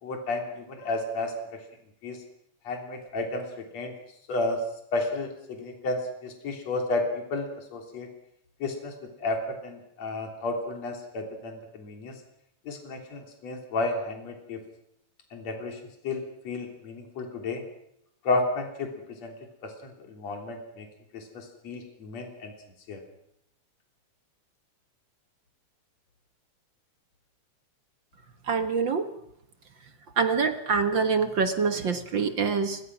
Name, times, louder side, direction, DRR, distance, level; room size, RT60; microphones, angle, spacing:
voice 1, 0.0-1.3 2.0-2.2 2.6-3.9 4.3-4.6 4.9-8.1 8.6-12.1 12.7-14.6 15.3-15.8 16.0-17.6 18.2-19.3 19.6-20.9 21.1-22.5 22.9-23.0, left 2 dB, 60° left, 2 dB, 4.5 m, -32 dB
voice 2, 28.5-29.1 30.2-32.8, right 5 dB, 50° right, 8 dB, 1.6 m, -25 dB
29.5 x 21.5 x 6.1 m, 0.76 s
omnidirectional pair, 3.4 m